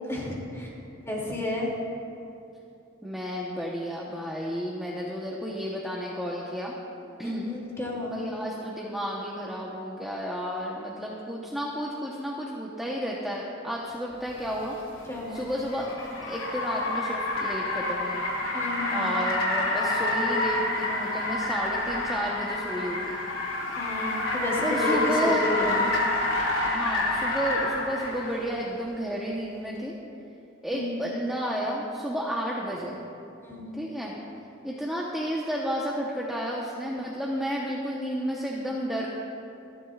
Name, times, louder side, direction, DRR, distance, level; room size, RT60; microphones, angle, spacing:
voice 1, 0.1-0.7 1.0-1.7 7.2-8.1 15.1-15.4 18.5-19.0 23.8-25.9 30.7-31.0 33.4-33.7, left 2 dB, 15° left, -3 dB, 2.5 m, -31 dB
voice 2, 3.0-6.7 7.2-7.5 8.1-14.7 15.3-16.0 16.3-18.2 18.9-23.2 24.6-25.5 26.6-29.9 30.6-33.0 33.8-34.1 34.6-39.1, equal, ahead, -4 dB, 1.0 m, -32 dB
Car, 14.4-28.4, left 2 dB, 85° left, 2.6 m, -28 dB
26.5 x 11.0 x 2.4 m, 2.8 s
head